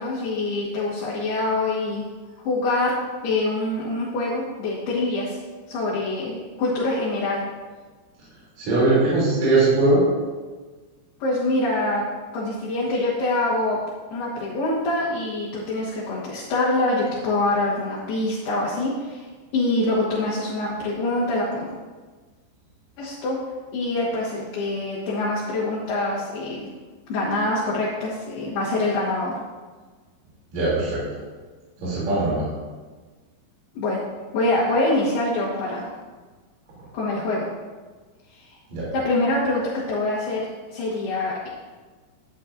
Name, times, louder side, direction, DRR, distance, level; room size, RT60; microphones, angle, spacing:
voice 1, 0.0-2.0 2.4-2.9 3.2-5.4 5.7-7.4 11.2-12.0 12.3-13.8 14.1-19.3 19.5-21.7 23.0-23.4 23.7-26.7 27.1-29.3 33.7-34.0 34.3-35.9 36.9-37.5 38.5-38.6 38.9-40.4 40.7-41.5, left 2 dB, 70° left, -7 dB, 3.4 m, -25 dB
voice 2, 8.6-10.0 30.5-31.0 31.8-32.4 38.7-38.9, right 2 dB, 45° right, -8 dB, 3.9 m, -20 dB
12.5 x 9.5 x 2.6 m, 1.4 s
omnidirectional pair, 5.1 m